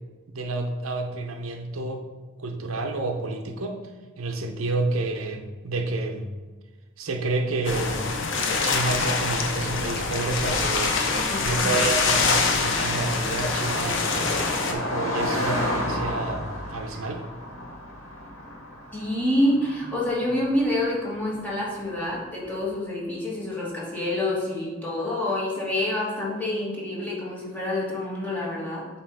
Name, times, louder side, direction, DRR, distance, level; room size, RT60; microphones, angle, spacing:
voice 1, 0.3-2.1 2.4-3.8 4.2-6.3 7.0-8.0 8.6-11.0 11.4-14.1 14.7-17.2, right 2 dB, 80° right, 4 dB, 0.7 m, -29 dB
sound 1, 7.6-14.7, left 4 dB, 60° left, 0.7 m, -25 dB
Car passing by, 8.8-22.5, left 1 dB, 85° left, 1.6 m, -34 dB
voice 2, 11.3-11.8 18.9-28.9, left 1 dB, 10° left, -6 dB, 1.6 m, -27 dB
7.4 x 3.0 x 4.7 m, 1.3 s
head